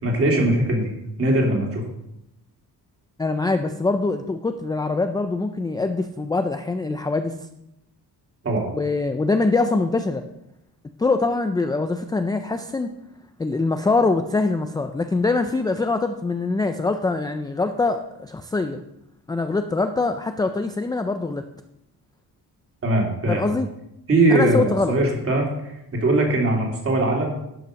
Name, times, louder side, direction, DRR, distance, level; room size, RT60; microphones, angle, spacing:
voice 1, 0.0-0.9 1.2-1.8 8.4-8.7 22.8-23.6 24.1-27.4, right 2 dB, 35° right, 0 dB, 2.6 m, -21 dB
voice 2, 3.2-7.4 8.7-10.2 11.0-12.9 13.4-18.8 19.3-21.4 23.3-23.7 24.3-24.9, left 3 dB, 10° left, 7 dB, 0.3 m, -23 dB
11.0 x 5.5 x 6.3 m, 0.84 s
wide cardioid pair, 170°, 39 cm